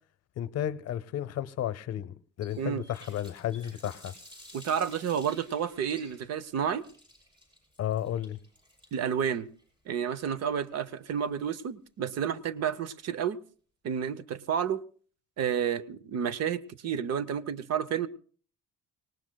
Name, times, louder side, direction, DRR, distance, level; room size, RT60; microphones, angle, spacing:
voice 1, 0.4-4.1 7.8-8.4, left 11 dB, 55° left, 0.7 m, -33 dB
Water tap faucet, 2.4-11.3, left 1 dB, 15° right, 5.7 m, -53 dB
voice 2, 4.5-6.8 8.9-9.5 9.9-13.4 13.8-14.8 15.4-18.1, right 8 dB, 55° right, 0.7 m, -30 dB
25.5 x 18.5 x 2.2 m
cardioid pair, 175°, 31 cm